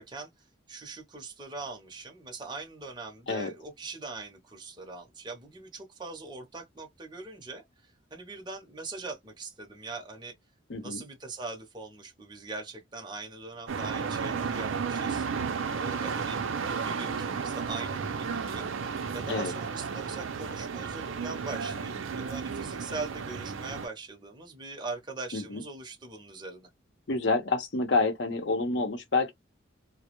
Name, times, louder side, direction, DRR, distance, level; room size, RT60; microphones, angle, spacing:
voice 1, 0.0-10.3 10.8-15.3 15.7-18.7 19.1-26.7, right 3 dB, 25° right, 0.6 m, -41 dB
voice 2, 10.7-11.0 19.3-19.5 25.3-25.6 27.1-29.3, left 3 dB, 65° left, 0.7 m, -28 dB
sound 1, 13.7-23.9, right 5 dB, 85° right, 0.5 m, -33 dB
2.1 x 2.0 x 2.8 m
head